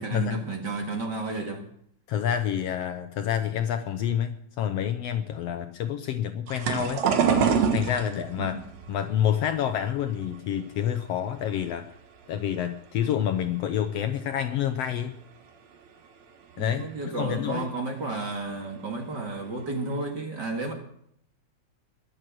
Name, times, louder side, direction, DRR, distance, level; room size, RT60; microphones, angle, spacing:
voice 1, 0.0-1.6 8.4-8.6 16.6-20.7, right 3 dB, 40° right, 2 dB, 2.2 m, -32 dB
voice 2, 2.1-7.0 7.7-8.6 8.9-11.9 12.3-15.2 16.6-17.7, left 9 dB, 70° left, 8 dB, 1.6 m, -28 dB
sound 1, 6.5-11.6 11.9-12.8 13.3-13.7 13.9-14.0 15.2-15.3 15.9-16.0 16.5-16.6 16.8-17.1 18.3-18.5 19.1-19.2 19.6-20.1, right 6 dB, 70° right, 2.6 m, -27 dB
21.5 x 7.7 x 6.2 m, 0.71 s
omnidirectional pair, 3.3 m